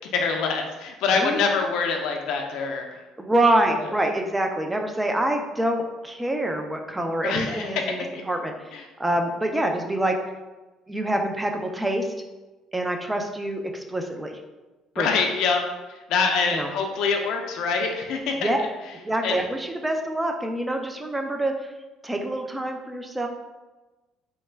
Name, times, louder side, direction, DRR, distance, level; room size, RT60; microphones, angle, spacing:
voice 1, 0.1-3.0 7.2-7.8 8.1-8.2 8.7-8.8 15.0-15.6 16.1-18.7 19.2-19.4, left 5 dB, 70° left, 3 dB, 0.4 m, -25 dB
voice 2, 3.2-8.7 9.0-10.2 10.9-12.1 12.7-14.4 15.0-15.2 16.5-16.7 18.4-18.6 19.0-21.5 22.0-23.3, right 1 dB, 10° right, 3 dB, 0.3 m, -26 dB
3.2 x 2.1 x 3.2 m, 1.1 s
cardioid pair, 135°, 0 cm